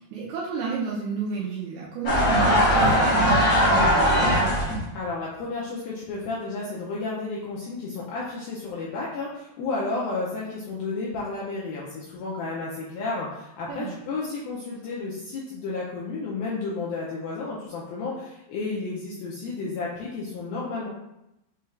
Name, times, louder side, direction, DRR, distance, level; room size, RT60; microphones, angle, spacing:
voice 1, 0.1-4.4 13.7-14.0, right 5 dB, 85° right, -4 dB, 2.3 m, -32 dB
sound 1, 2.0-4.8, equal, 65° left, 1.4 m, -19 dB
voice 2, 4.9-20.9, left 3 dB, 85° left, -5 dB, 2.1 m, -32 dB
6.7 x 2.3 x 3.2 m, 0.86 s
omnidirectional pair, 5.0 m